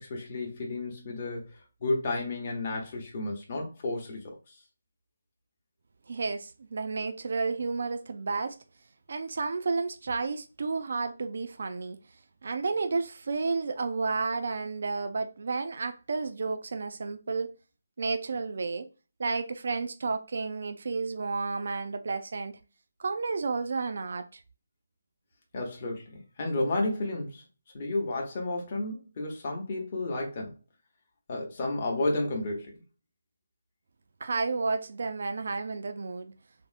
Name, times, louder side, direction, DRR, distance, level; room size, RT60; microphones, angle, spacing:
voice 1, 0.0-1.5 1.8-4.6 25.5-27.4 27.7-30.6 31.3-32.7, left 2 dB, 35° left, 0.8 m, -32 dB
voice 2, 6.1-8.6 9.1-12.0 12.4-17.5 18.0-18.9 19.2-22.6 23.0-24.4 34.2-36.4, right 4 dB, 60° right, 0.3 m, -31 dB
3.4 x 2.0 x 2.4 m
hypercardioid pair, 170°, 0 cm